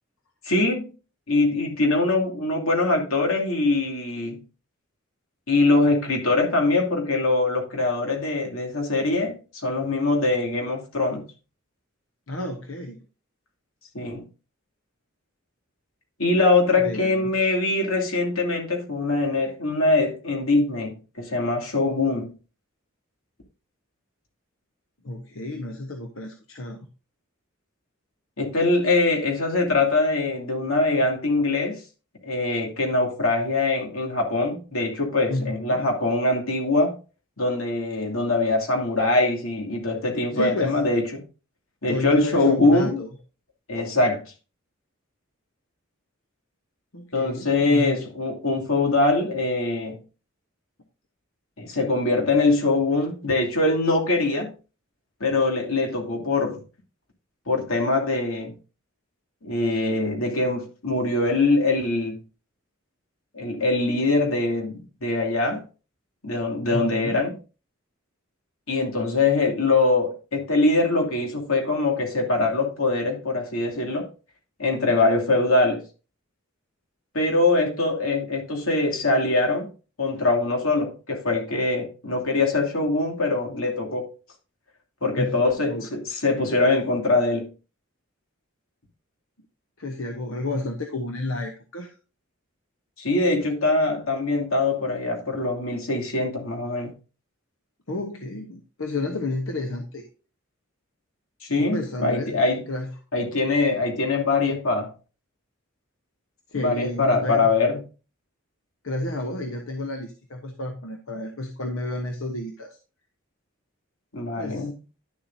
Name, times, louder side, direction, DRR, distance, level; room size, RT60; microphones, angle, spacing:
voice 1, 0.4-0.9 1.3-4.4 5.5-11.2 13.9-14.3 16.2-22.3 28.4-31.8 32.2-37.0 37.4-41.2 41.8-43.0 43.7-44.2 47.1-50.0 51.6-54.5 55.2-56.6 57.5-58.6 59.4-62.2 63.3-65.6 66.2-67.4 68.7-74.1 74.6-75.8 77.1-79.7 80.0-84.1 85.0-87.5 93.0-96.9 101.4-102.6 103.1-104.9 106.5-107.8 114.1-114.8, left 2 dB, 90° left, 2.8 m, -23 dB
voice 2, 12.3-13.0 16.8-17.4 25.0-26.8 35.3-35.9 40.3-40.8 41.9-43.1 46.9-48.0 66.7-67.3 85.2-85.4 85.6-85.9 89.8-91.9 97.9-100.1 101.6-102.4 102.7-102.9 106.5-107.5 108.8-112.8 114.4-114.7, left 2 dB, 75° left, 1.1 m, -31 dB
11.0 x 7.3 x 2.7 m
head